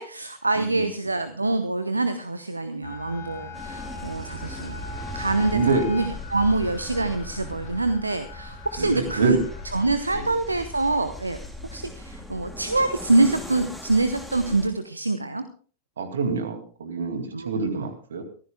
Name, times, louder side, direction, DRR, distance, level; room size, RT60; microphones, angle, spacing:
voice 1, 0.0-4.8 5.1-9.4 9.7-11.4 11.7-15.4 17.3-17.9, right 2 dB, 80° right, 11 dB, 0.8 m, -25 dB
voice 2, 0.6-0.9 5.5-5.9 8.8-9.4 10.1-10.3 16.0-18.2, right 4 dB, 65° right, 7 dB, 2.3 m, -26 dB
sound 1, 2.8-10.1, left 3 dB, 65° left, 4.0 m, -40 dB
sound 2, 3.5-14.7, left 1 dB, ahead, 3.7 m, -39 dB
24.5 x 15.0 x 2.2 m, 0.41 s
figure-of-eight pair, 90°, 0 cm